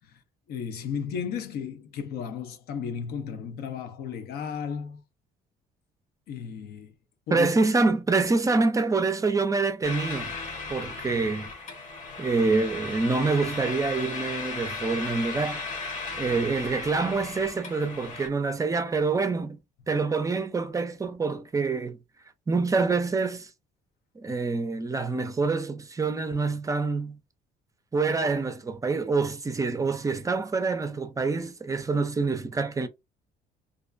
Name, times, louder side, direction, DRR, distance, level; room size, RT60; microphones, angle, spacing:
voice 1, 0.5-5.0 6.3-6.9 7.3-7.5, left 7 dB, 70° left, 0.6 m, -34 dB
voice 2, 7.3-10.3 10.7-11.5 12.2-15.6 16.2-19.6 19.9-22.0 22.5-23.5 24.2-27.2 27.9-32.9, right 4 dB, 20° right, 0.4 m, -26 dB
sound 1, 9.8-18.3, left 3 dB, 50° left, 0.9 m, -36 dB
2.4 x 2.1 x 2.4 m
cardioid pair, 110°, 17 cm